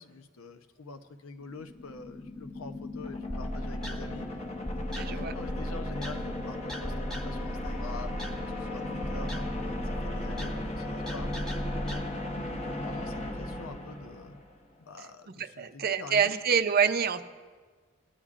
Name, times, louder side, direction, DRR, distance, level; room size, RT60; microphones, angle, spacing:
voice 1, 0.0-4.3 4.7-11.3 12.4-14.4 14.8-16.4, left 3 dB, 85° left, 8 dB, 0.7 m, -45 dB
sound 1, 1.4-14.6, left 2 dB, 30° left, 0.9 m, -37 dB
sound 2, 3.3-12.0, equal, ahead, 1.1 m, -37 dB
voice 2, 4.9-5.3 11.9-12.1 15.4-17.2, right 7 dB, 45° right, 9 dB, 0.5 m, -27 dB
22.5 x 10.0 x 2.5 m, 1.5 s
head